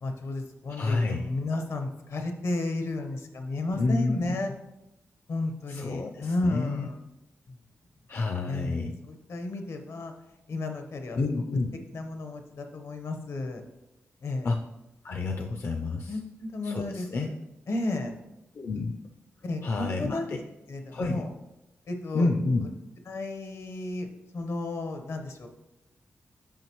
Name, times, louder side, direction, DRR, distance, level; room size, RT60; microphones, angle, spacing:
voice 1, 0.0-4.5 5.3-7.0 7.5-7.6 8.5-10.1 10.5-11.2 11.9-13.6 14.2-14.5 16.1-17.3 17.7-18.1 19.4-20.3 20.7-21.3 21.9-22.3 23.1-24.1 24.3-25.5, left 2 dB, 75° left, 5 dB, 1.0 m, -33 dB
voice 2, 0.7-1.3 3.7-4.4 5.7-6.9 8.1-8.9 11.2-11.7 14.4-14.6 15.0-16.2 16.6-17.3 18.5-19.0 19.6-20.4 20.9-21.3 22.1-22.7, left 3 dB, 50° left, 4 dB, 0.5 m, -29 dB
8.8 x 5.8 x 3.1 m, 0.96 s
wide cardioid pair, 115°, 5 cm